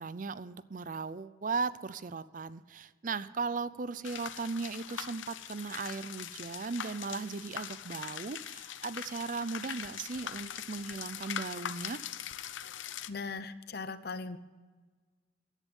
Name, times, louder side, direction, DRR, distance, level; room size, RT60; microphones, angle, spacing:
voice 1, 0.0-12.0, right 4 dB, 45° right, 16 dB, 0.5 m, -37 dB
sound 1, 4.0-13.1, left 9 dB, 85° left, 0.7 m, -42 dB
voice 2, 13.1-14.4, left 4 dB, 55° left, 12 dB, 0.8 m, -39 dB
16.5 x 11.0 x 5.4 m, 1.4 s
head